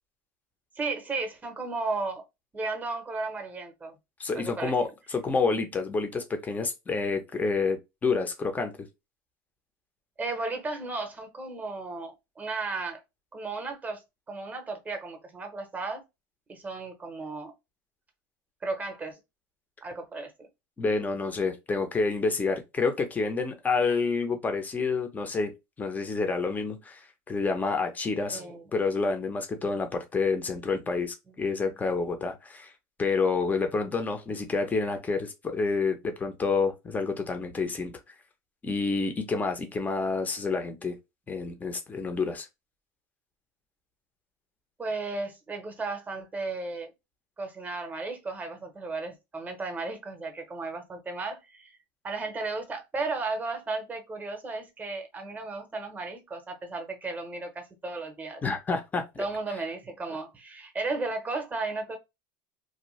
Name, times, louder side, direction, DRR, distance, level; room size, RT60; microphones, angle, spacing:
voice 1, 0.7-2.2 2.5-4.0 4.4-4.7 10.2-13.0 13.3-14.0 14.3-16.0 16.5-17.5 18.6-19.2 19.8-20.3 28.3-28.6 44.8-46.9 47.4-51.7 52.0-58.4 59.2-62.0, right 3 dB, 15° right, 0.8 m, -34 dB
voice 2, 4.2-8.9 20.8-25.5 25.8-28.4 28.7-32.7 33.0-37.9 38.6-40.9 41.3-42.5 58.4-59.2, left 4 dB, 15° left, 0.6 m, -28 dB
2.6 x 2.1 x 3.1 m
supercardioid pair, 130°, 11 cm